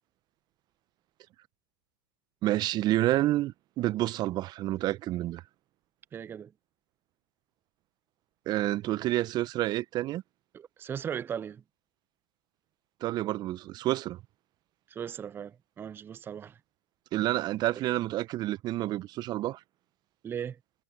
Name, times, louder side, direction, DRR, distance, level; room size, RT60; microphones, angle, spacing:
voice 1, 2.4-5.4 8.5-10.2 13.0-14.2 17.1-19.6, right 15 dB, 35° right, 1.2 m, -29 dB
voice 2, 6.1-6.5 10.5-11.6 14.9-16.6 20.2-20.6, right 8 dB, 20° right, 0.5 m, -37 dB
hypercardioid pair, 105°, 12 cm